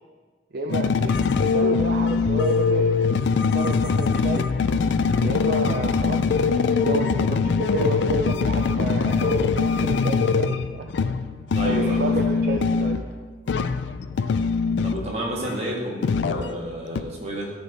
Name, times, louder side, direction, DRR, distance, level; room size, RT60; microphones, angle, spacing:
voice 1, 0.5-2.9 3.5-4.4 5.2-10.9 11.6-13.1, right 2 dB, 55° right, 2 dB, 0.5 m, -30 dB
sound 1, 0.7-13.0 13.5-15.2 15.4-16.6 16.9-17.0, left 5 dB, 75° left, 0.4 m, -22 dB
voice 2, 11.5-12.1 14.8-17.5, equal, 35° right, -3 dB, 1.5 m, -31 dB
13.0 x 4.4 x 3.4 m, 1.5 s
head